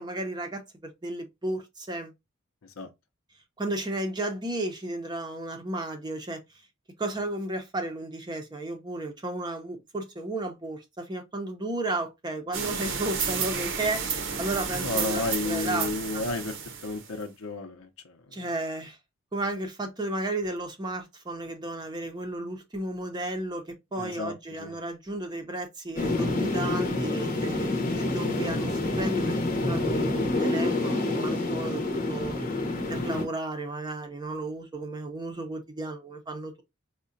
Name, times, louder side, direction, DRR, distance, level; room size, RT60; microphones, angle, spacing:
voice 1, 0.0-2.1 3.6-6.4 7.0-16.2 18.3-19.0 19.3-32.4 32.9-36.6, right 2 dB, 20° right, 0.6 m, -33 dB
sound 1, 12.5-17.2, right 6 dB, 65° right, 0.7 m, -31 dB
voice 2, 14.8-16.6 16.8-18.2 24.0-24.3 24.6-24.7, left 3 dB, 90° left, 0.7 m, -32 dB
sound 2, 26.0-33.2, left 2 dB, 40° left, 0.8 m, -27 dB
4.7 x 2.2 x 2.6 m
head